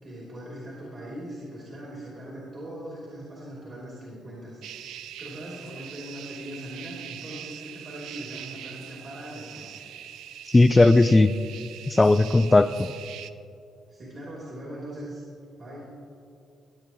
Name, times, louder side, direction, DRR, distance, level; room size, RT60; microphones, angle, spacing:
voice 1, 0.0-9.8 13.9-15.2 15.6-15.9, equal, 40° right, -5 dB, 3.0 m, -40 dB
sound 1, 4.6-13.3, right 10 dB, 85° right, 0.4 m, -42 dB
voice 2, 10.5-11.3 11.9-12.9, left 2 dB, 20° left, 13 dB, 0.3 m, -17 dB
18.0 x 8.6 x 3.0 m, 2.6 s
cardioid pair, 90°, 0 cm